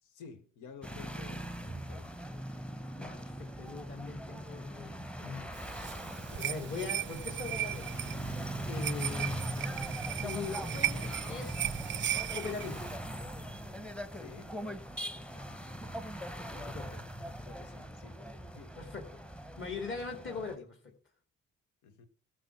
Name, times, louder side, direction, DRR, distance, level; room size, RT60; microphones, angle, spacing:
voice 1, 0.0-2.2 6.2-6.5 14.1-14.6 16.5-18.8 21.8-22.1, left 6 dB, 90° left, 1.7 m, -53 dB
sound 1, 0.8-20.6, right 1 dB, 5° left, 0.9 m, -40 dB
voice 2, 3.0-5.5 6.4-8.3 8.5-9.5 10.2-11.8 12.3-12.8 15.2-15.4 15.8-16.0 16.3-17.0 18.8-20.9, left 4 dB, 40° left, 2.5 m, -42 dB
sound 2, 5.5-13.0, right 12 dB, 40° right, 0.4 m, -37 dB
12.5 x 6.2 x 5.9 m
cardioid pair, 90°, 30 cm